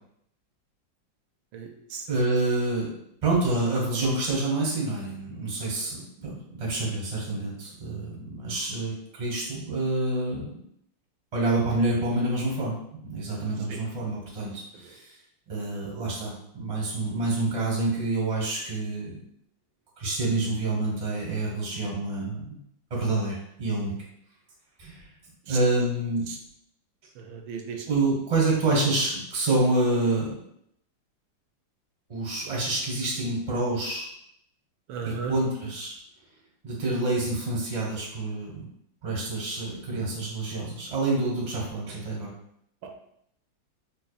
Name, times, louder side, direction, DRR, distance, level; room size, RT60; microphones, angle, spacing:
voice 1, 1.5-2.0 13.7-13.8 25.5-25.6 27.2-27.8 34.9-35.3, right 6 dB, 85° right, 4 dB, 1.4 m, -35 dB
voice 2, 2.1-2.9 3.2-10.5 11.3-15.1 15.5-19.2 20.0-22.6 22.9-23.9 24.8-25.0 25.5-26.3 27.9-30.4 32.1-34.1 35.0-35.9 36.6-38.6 39.0-42.3, right 2 dB, 25° right, -4 dB, 0.8 m, -27 dB
4.6 x 2.7 x 2.4 m, 0.72 s
omnidirectional pair, 2.1 m